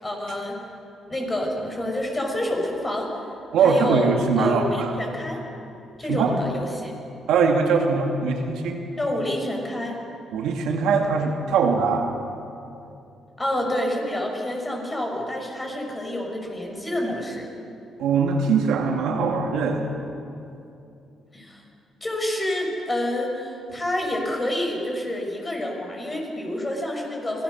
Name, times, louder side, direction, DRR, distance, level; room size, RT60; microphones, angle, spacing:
voice 1, 0.0-0.6 1.1-3.1 3.6-4.1 4.4-5.4 6.0-6.9 9.0-10.0 13.4-17.5 21.3-21.6 22.0-27.4, left 1 dB, 20° left, 1 dB, 5.6 m, -28 dB
voice 2, 3.5-4.9 6.1-6.4 7.3-8.8 10.3-12.1 18.0-19.9, right 5 dB, 85° right, 1 dB, 2.4 m, -21 dB
24.5 x 16.5 x 6.5 m, 2.7 s
cardioid pair, 90°, 0 cm